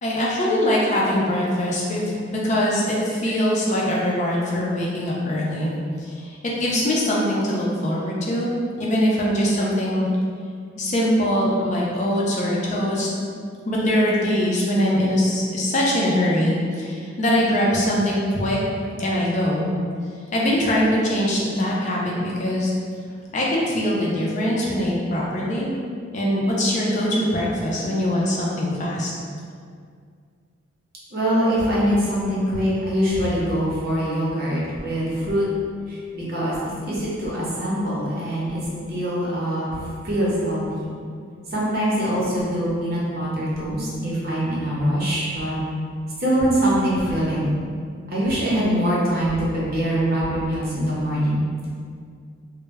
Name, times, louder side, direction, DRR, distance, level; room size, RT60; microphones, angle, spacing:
voice 1, 0.0-5.7 6.0-10.1 10.8-13.1 13.7-18.6 19.0-19.7 20.3-22.7 23.3-25.7 26.1-29.1, equal, 35° left, -4 dB, 0.3 m, -22 dB
voice 2, 31.1-35.5 35.9-39.7 40.0-40.6 41.5-45.6 46.2-47.5 48.1-51.7, equal, 50° right, -7 dB, 0.7 m, -23 dB
2.1 x 2.0 x 3.3 m, 2.2 s
head